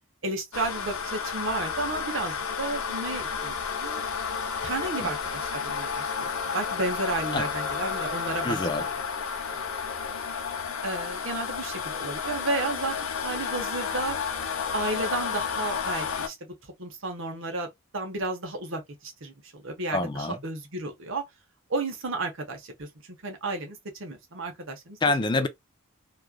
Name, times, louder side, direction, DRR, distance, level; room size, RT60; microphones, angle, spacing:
voice 1, 0.2-4.0 4.6-8.9 9.4-9.6 9.9-10.2 10.8-12.9 13.2-14.2 14.7-16.4 16.8-21.2 21.7-22.9 23.2-25.0 25.3-25.5, right 2 dB, 65° right, 1.0 m, -33 dB
sound 1, 0.5-16.3, left 6 dB, 70° left, 0.7 m, -31 dB
voice 2, 8.4-8.9 19.9-20.4 25.0-25.5, left 2 dB, 20° left, 0.4 m, -26 dB
3.1 x 2.4 x 2.2 m
head